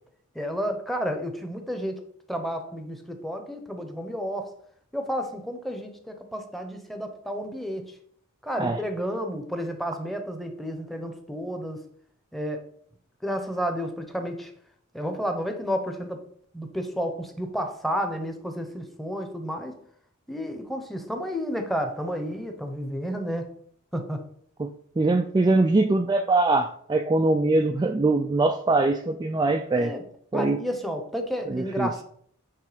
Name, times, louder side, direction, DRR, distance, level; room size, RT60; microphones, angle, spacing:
voice 1, 0.3-2.0 2.3-4.5 4.9-7.9 8.4-11.8 12.3-12.6 13.2-14.5 14.9-16.2 16.5-19.7 20.3-23.5 23.9-24.2 29.7-30.0 30.3-32.0, equal, ahead, 0.9 m, -31 dB
voice 2, 25.0-30.0 30.3-30.6 31.5-31.9, right 2 dB, 20° right, 0.3 m, -22 dB
9.4 x 3.3 x 5.0 m
head